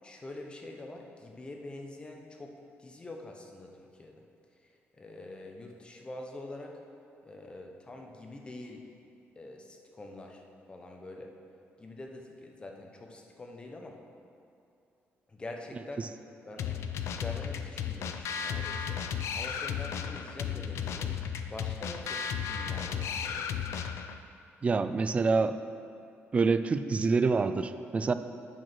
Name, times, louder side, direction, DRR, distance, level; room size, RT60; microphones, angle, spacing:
voice 1, 0.0-4.2 4.6-6.7 7.2-8.9 9.4-10.4 10.7-11.3 11.8-14.0 15.3-16.1 16.5-16.8 17.1-19.0 19.3-21.1 21.5-23.5, left 2 dB, 20° left, 2 dB, 0.8 m, -45 dB
sound 1, 16.6-24.2, left 7 dB, 75° left, 0.4 m, -34 dB
voice 2, 24.6-25.6 26.3-28.1, right 4 dB, 25° right, 11 dB, 0.3 m, -26 dB
9.0 x 4.6 x 6.0 m, 2.6 s
cardioid pair, 145°, 5 cm